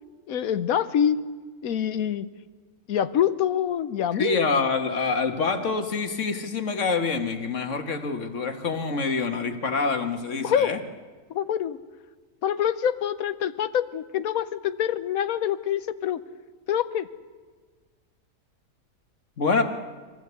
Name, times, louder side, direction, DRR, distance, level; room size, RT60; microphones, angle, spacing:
voice 1, 0.3-1.3 1.6-2.3 2.9-4.5 10.4-10.7 11.3-11.8 12.4-16.2 16.7-17.1, left 9 dB, 70° left, 14 dB, 1.2 m, -25 dB
voice 2, 4.1-10.8 19.4-19.6, left 4 dB, 50° left, 6 dB, 1.9 m, -26 dB
25.0 x 16.0 x 8.2 m, 1.4 s
omnidirectional pair, 1.6 m